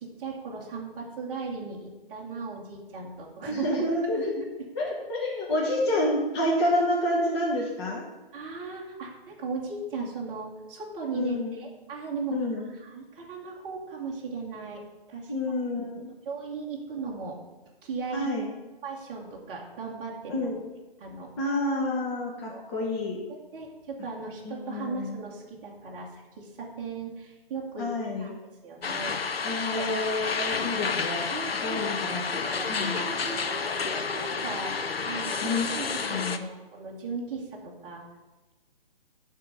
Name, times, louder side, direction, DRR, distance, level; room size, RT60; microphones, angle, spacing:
voice 1, 0.0-3.6 4.1-4.5 8.3-12.4 12.7-14.8 15.1-15.3 16.2-17.4 17.8-18.3 18.8-20.3 21.0-21.3 22.5-22.6 23.5-27.9 28.2-28.3 28.6-29.2 31.3-31.9 32.6-38.0, right 4 dB, 15° right, -4 dB, 1.0 m, -37 dB
voice 2, 3.5-4.3 4.7-8.0 11.1-11.6 12.3-12.7 15.3-16.1 18.1-18.5 20.3-20.6 21.4-23.2 24.4-25.2 27.8-28.4 29.4-31.3 31.6-33.1 35.4-35.8 36.0-36.5, left 1 dB, 25° left, -3 dB, 1.2 m, -29 dB
sound 1, 28.8-36.4, left 5 dB, 80° left, 0.7 m, -30 dB
11.0 x 3.7 x 5.5 m, 1.2 s
figure-of-eight pair, 140°, 30 cm